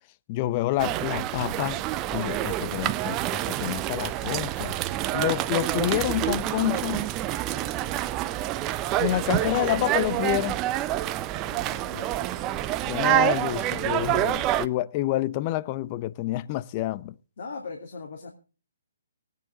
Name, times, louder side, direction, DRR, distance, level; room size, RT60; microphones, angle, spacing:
voice 1, 0.3-1.8 2.1-3.2 3.5-4.8 5.1-7.1 9.0-10.6 12.9-17.1, left 15 dB, 30° left, 0.6 m, -28 dB
sound 1, 0.8-14.7, right 14 dB, 25° right, 0.6 m, -27 dB
voice 2, 9.3-9.8 11.3-12.7 17.4-18.3, left 4 dB, 55° left, 2.8 m, -41 dB
19.5 x 9.5 x 3.8 m
figure-of-eight pair, 130°, 0 cm